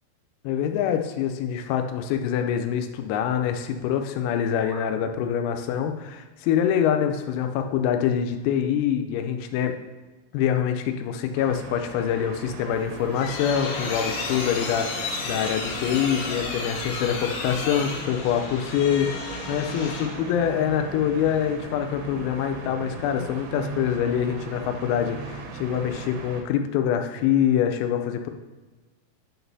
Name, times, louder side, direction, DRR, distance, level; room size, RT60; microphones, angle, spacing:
voice 1, 0.4-9.8 10.3-28.3, left 9 dB, 90° left, 7 dB, 3.4 m, -25 dB
sound 1, 4.2-4.9, right 2 dB, 45° right, 1.0 m, -46 dB
sound 2, 11.4-26.4, right 4 dB, 80° right, 3.4 m, -39 dB
sound 3, 12.8-20.3, left 4 dB, 70° left, 3.0 m, -32 dB
10.0 x 6.0 x 2.7 m, 1.3 s
omnidirectional pair, 6.0 m